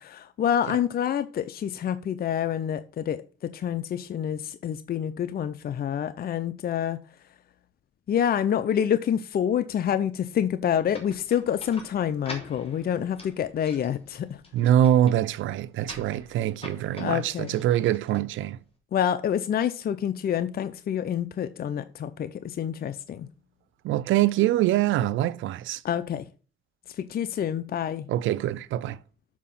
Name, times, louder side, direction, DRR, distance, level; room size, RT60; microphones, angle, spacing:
voice 1, 0.0-7.0 8.1-14.4 17.0-17.6 18.9-23.3 25.8-26.2 26.9-28.1, left 9 dB, 50° left, 0.6 m, -27 dB
sound 1, 10.9-18.8, left 2 dB, 30° left, 3.0 m, -46 dB
voice 2, 14.5-18.6 23.8-25.8 28.1-29.0, right 12 dB, 80° right, 0.5 m, -24 dB
7.3 x 4.7 x 5.7 m
cardioid pair, 90°, 20 cm